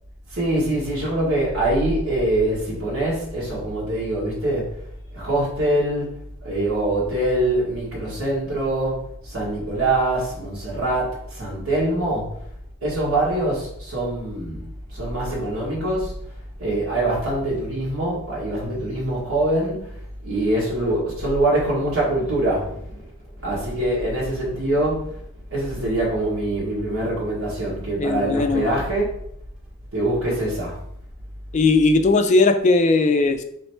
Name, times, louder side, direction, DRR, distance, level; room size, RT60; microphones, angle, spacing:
voice 1, 0.3-4.7 5.1-6.1 6.4-12.3 12.8-16.1 16.6-20.0 20.2-23.0 23.4-25.2 25.5-29.1 29.9-30.8, right 1 dB, 75° right, -6 dB, 1.5 m, -24 dB
voice 2, 28.0-28.7 31.5-33.4, left 3 dB, 35° left, 7 dB, 0.3 m, -18 dB
3.2 x 3.1 x 4.4 m, 0.72 s
head